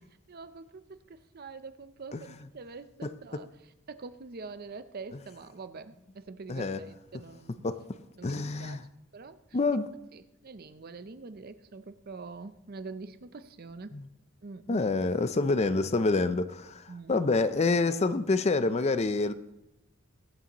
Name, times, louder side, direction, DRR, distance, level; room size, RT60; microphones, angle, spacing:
voice 1, 0.3-3.5 3.9-7.7 8.2-8.8 9.1-9.4 10.1-13.9 14.4-14.8 16.9-17.2, right 4 dB, 45° right, 0.6 m, -44 dB
voice 2, 3.0-3.4 6.5-6.8 7.6-7.8 8.2-8.8 9.5-9.9 13.9-14.1 14.7-19.3, left 3 dB, 30° left, 0.5 m, -27 dB
22.5 x 8.5 x 3.0 m
head